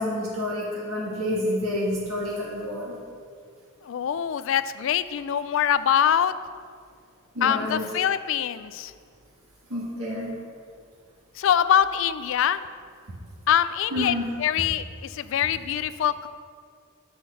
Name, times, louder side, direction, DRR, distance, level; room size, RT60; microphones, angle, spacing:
voice 1, 0.0-3.0 7.3-7.8 9.7-10.3 13.9-14.3, left 1 dB, 80° right, -5 dB, 1.5 m, -28 dB
voice 2, 3.8-6.3 7.4-8.9 11.4-12.6 13.5-16.3, left 9 dB, 60° left, 14 dB, 0.3 m, -24 dB
6.3 x 5.7 x 6.8 m, 2.1 s
head